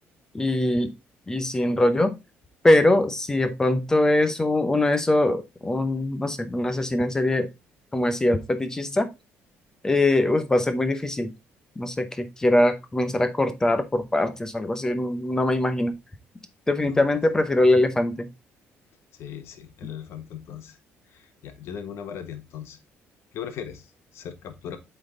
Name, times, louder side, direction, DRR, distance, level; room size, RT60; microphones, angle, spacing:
voice 1, 0.3-0.9 1.3-2.1 2.6-7.5 7.9-9.1 9.8-11.3 11.8-15.9 16.7-18.3, left 1 dB, 10° left, 9 dB, 0.8 m, -22 dB
voice 2, 19.2-20.8 21.1-22.8 23.3-24.8, left 8 dB, 65° left, 8 dB, 1.4 m, -38 dB
8.4 x 4.0 x 3.8 m, 0.23 s
cardioid pair, 150°, 5 cm